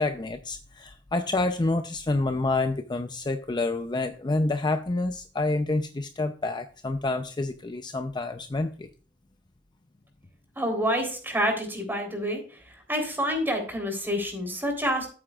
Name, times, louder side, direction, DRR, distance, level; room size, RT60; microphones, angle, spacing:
voice 1, 0.0-8.9, left 2 dB, 25° left, 7 dB, 0.5 m, -28 dB
voice 2, 10.6-12.4 12.9-15.1, equal, 10° right, 3 dB, 3.5 m, -27 dB
14.0 x 8.6 x 2.4 m, 0.38 s
head